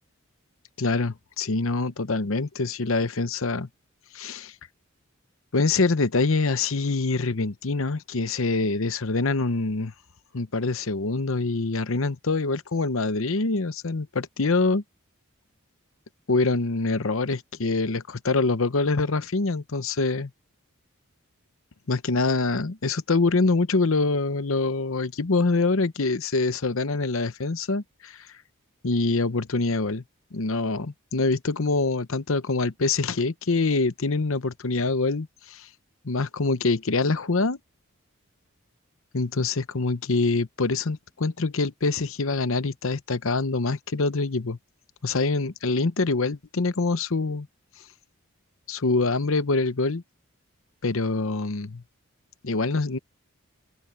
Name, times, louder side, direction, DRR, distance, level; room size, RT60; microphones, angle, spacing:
voice 1, 0.8-3.7 4.1-4.5 5.5-9.9 10.3-14.8 16.3-20.3 21.9-28.3 28.8-30.0 30.3-35.7 36.0-37.6 39.1-44.6 45.0-47.5 48.7-50.0 50.8-51.8 52.4-53.0, left 3 dB, 65° left, 0.9 m, -25 dB
open air
head